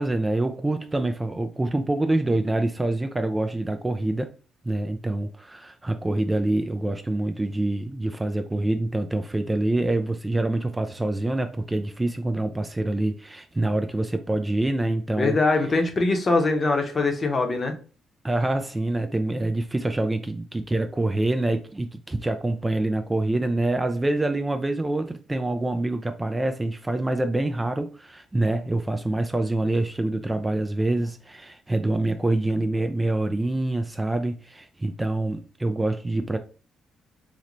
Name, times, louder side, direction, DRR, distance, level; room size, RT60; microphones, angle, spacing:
voice 1, 0.0-4.3 4.6-15.4 18.2-36.4, right 2 dB, 15° right, 0.3 m, -26 dB
voice 2, 15.2-17.7, left 3 dB, 35° left, 0.7 m, -22 dB
3.8 x 2.1 x 3.0 m
cardioid pair, 90°, 0 cm